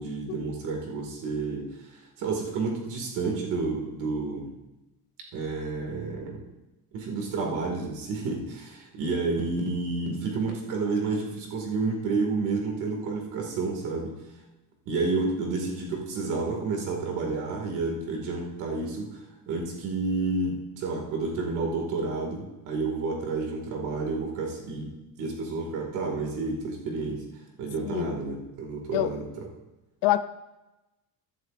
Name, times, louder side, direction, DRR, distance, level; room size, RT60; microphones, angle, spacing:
voice 1, 0.0-4.5 5.3-6.5 6.9-14.2 14.9-19.2 19.5-29.5, right 3 dB, 60° right, 1 dB, 2.2 m, -30 dB
voice 2, 27.8-28.1 28.9-29.1 30.0-30.2, left 14 dB, 75° left, 11 dB, 0.6 m, -25 dB
15.5 x 11.5 x 2.5 m, 1.0 s
cardioid pair, 180°, 35 cm